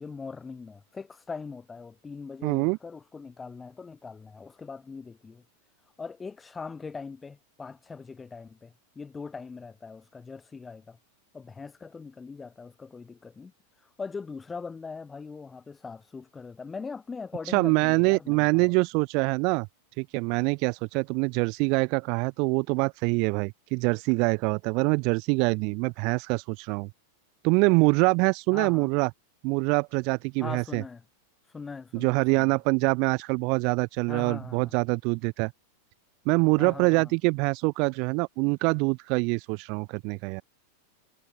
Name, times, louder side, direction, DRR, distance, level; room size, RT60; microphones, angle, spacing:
voice 1, 0.0-5.4 6.0-11.0 11.3-13.5 13.8-18.7 28.5-28.9 30.4-31.0 31.5-32.6 34.1-34.8 36.6-37.2, left 4 dB, 15° left, 4.0 m, -41 dB
voice 2, 2.4-2.8 17.5-19.7 20.0-26.9 27.4-29.1 29.4-30.8 31.9-35.5 36.3-40.4, right 32 dB, 45° right, 1.1 m, -25 dB
figure-of-eight pair, 90°, 0 cm